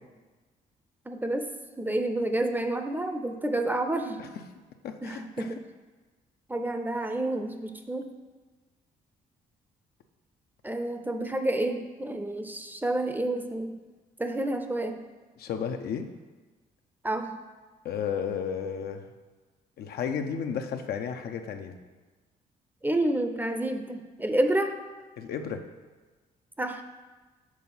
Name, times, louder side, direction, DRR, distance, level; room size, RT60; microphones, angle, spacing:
voice 1, 1.1-1.5 1.8-4.2 5.0-5.6 6.5-8.1 10.6-13.8 14.2-15.0 17.0-17.4 22.8-24.8 26.6-26.8, right 1 dB, 10° right, 6 dB, 0.6 m, -29 dB
voice 2, 4.8-5.6 15.4-16.1 17.8-19.1 19.8-21.8 25.2-25.6, left 7 dB, 70° left, 6 dB, 0.6 m, -33 dB
6.2 x 3.9 x 5.5 m, 1.3 s
supercardioid pair, 75°, 17 cm